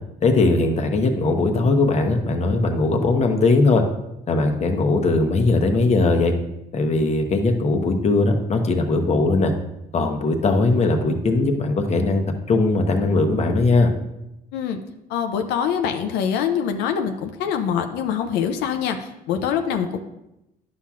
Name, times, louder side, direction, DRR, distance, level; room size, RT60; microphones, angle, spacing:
voice 1, 0.2-3.8 4.3-6.4 6.7-9.5 9.9-13.9, left 3 dB, 40° left, 4 dB, 0.9 m, -19 dB
voice 2, 15.1-20.0, left 8 dB, 85° left, 6 dB, 0.6 m, -24 dB
10.5 x 5.7 x 2.4 m, 0.88 s
cardioid pair, 110°, 17 cm